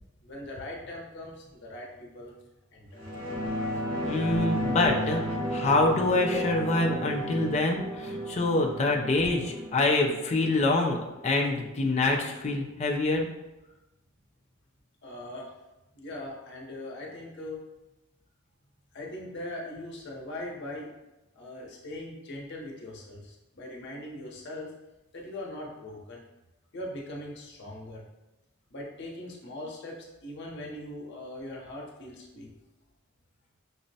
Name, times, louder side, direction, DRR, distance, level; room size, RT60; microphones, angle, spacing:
voice 1, 0.2-2.4 2.7-3.1 12.7-12.8 15.0-15.5 15.9-17.6 18.9-20.9 21.3-24.7 25.1-26.2 26.7-28.0 28.7-32.5, left 1 dB, 55° left, -2 dB, 0.7 m, -40 dB
sound 1, 3.0-12.0 12.3-12.4, equal, 65° right, 1.5 m, -33 dB
voice 2, 4.0-13.3, left 2 dB, 30° left, 1 dB, 0.3 m, -26 dB
5.9 x 2.1 x 2.7 m, 0.99 s
head